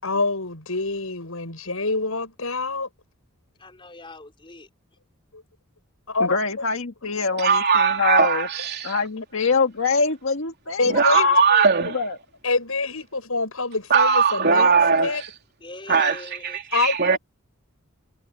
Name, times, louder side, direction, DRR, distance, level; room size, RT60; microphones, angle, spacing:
voice 1, 0.0-2.9 5.3-5.4 6.1-6.7 10.8-11.4 12.4-15.2 16.7-17.2, left 3 dB, 85° left, 7.4 m, -26 dB
voice 2, 3.6-4.7 15.6-16.6, left 2 dB, 25° left, 3.8 m, -42 dB
voice 3, 6.2-8.5 8.8-11.7 11.9-12.2, left 5 dB, 70° left, 1.8 m, -24 dB
voice 4, 7.3-9.0 10.9-12.0 13.9-15.3 15.9-17.2, right 5 dB, 55° right, 3.3 m, -20 dB
head